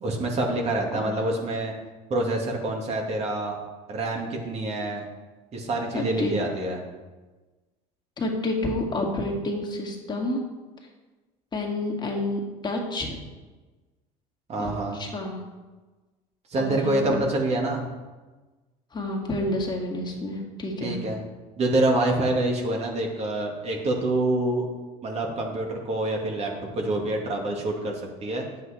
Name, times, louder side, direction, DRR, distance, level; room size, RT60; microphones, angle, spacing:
voice 1, 0.0-1.7 2.1-3.6 3.9-5.1 5.5-6.8 14.5-15.0 16.5-17.9 20.8-21.2 21.6-24.7 25.0-28.4, right 2 dB, 40° right, 0 dB, 2.4 m, -26 dB
voice 2, 5.9-6.3 8.2-10.4 11.5-13.2 14.6-15.4 16.6-17.3 18.9-21.0, left 2 dB, 30° left, 0 dB, 2.3 m, -29 dB
9.7 x 8.0 x 4.4 m, 1.2 s
supercardioid pair, 90°, 16 cm